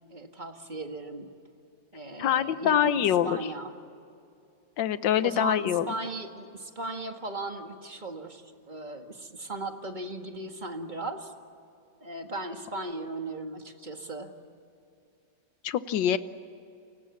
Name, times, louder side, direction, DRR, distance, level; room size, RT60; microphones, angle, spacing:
voice 1, 0.1-1.3 1.9-3.8 5.2-11.3 12.0-14.4, right 2 dB, 25° right, 5 dB, 1.8 m, -37 dB
voice 2, 2.2-3.4 4.8-5.9 15.6-16.2, left 10 dB, 75° left, 13 dB, 1.6 m, -24 dB
30.0 x 25.0 x 7.2 m, 2.6 s
omnidirectional pair, 2.0 m